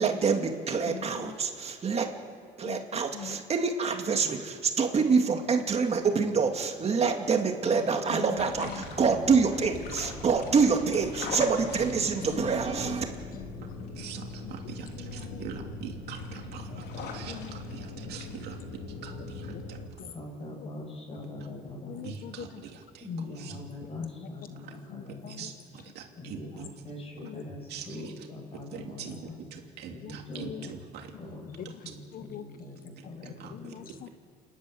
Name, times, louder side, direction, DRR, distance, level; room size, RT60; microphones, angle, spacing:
voice 1, 0.0-2.1 2.6-13.0, right 5 dB, 40° right, 4 dB, 2.2 m, -26 dB
voice 2, 0.8-1.4 2.6-3.4 8.0-8.9 12.2-14.0 14.4-14.5 14.9-15.7 16.7-18.6 19.5-19.6 20.0-20.1 20.6-20.7 21.8-22.7 23.1-23.2 24.0-24.3 24.9-25.5 26.6-26.7 27.2-27.4 28.7-29.1 30.0-30.7 31.4-31.9 32.1-32.6 33.0-34.1, left 9 dB, 60° left, 10 dB, 1.0 m, -44 dB
sound 1, 8.3-19.9, left 3 dB, 75° left, 3.3 m, -40 dB
voice 3, 13.9-18.6 19.0-19.8 22.0-23.1 23.4-23.6 24.6-24.7 25.3-26.6 27.7-28.3 28.7-31.1 33.0-33.7, right 8 dB, 75° right, 3 dB, 2.7 m, -44 dB
voice 4, 20.0-22.0 23.0-25.4 26.2-29.4 29.9-30.8 31.2-33.7, left 2 dB, 35° left, 2 dB, 7.0 m, -42 dB
29.5 x 12.0 x 9.2 m, 2.3 s
cardioid pair, 110°, 17 cm